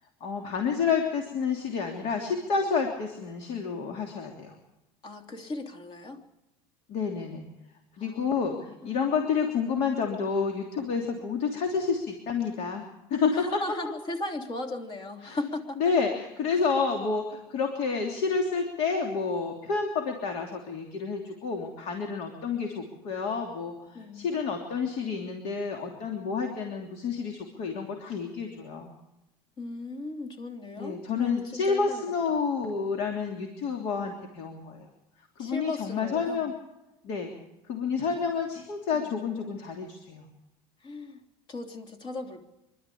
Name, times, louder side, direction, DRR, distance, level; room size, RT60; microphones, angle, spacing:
voice 1, 0.2-4.5 6.9-7.5 8.0-12.8 13.1-13.6 15.2-15.4 15.8-28.9 30.8-34.9 35.4-36.5 37.0-37.3 37.7-40.3, left 5 dB, 60° left, 3 dB, 3.1 m, -29 dB
voice 2, 5.0-6.2 8.0-9.0 13.3-15.8 23.9-24.3 29.6-32.0 32.3-32.4 35.4-36.5 38.0-38.1 38.9-39.2 40.8-42.5, left 2 dB, 35° left, 5 dB, 3.2 m, -37 dB
25.5 x 12.5 x 8.5 m, 0.95 s
supercardioid pair, 130°, 12 cm